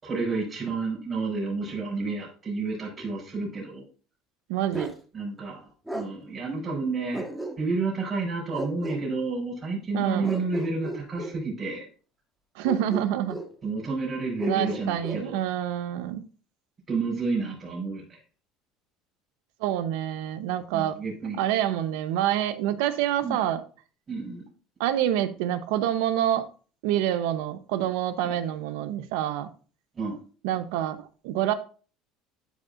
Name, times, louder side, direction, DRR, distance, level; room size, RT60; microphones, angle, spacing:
voice 1, 0.0-3.8 5.1-5.7 5.9-7.3 7.6-11.9 13.6-15.4 16.9-18.2 20.7-21.4 23.2-23.4 24.1-24.4 28.2-28.3 29.9-30.2, right 3 dB, 30° right, -4 dB, 3.9 m, -30 dB
voice 2, 4.5-4.9 9.9-10.3 12.6-13.4 14.5-16.2 19.6-21.0 21.4-23.6 24.8-26.4 26.8-29.5 30.4-31.5, right 11 dB, 80° right, 12 dB, 0.8 m, -27 dB
Bark, 4.7-5.0 5.9-6.1 7.1-7.9 8.5-9.0 10.2-11.4 12.6-13.5 14.4-15.2, right 2 dB, 5° right, 1.5 m, -35 dB
11.5 x 5.1 x 2.5 m, 0.38 s
supercardioid pair, 110°, 0 cm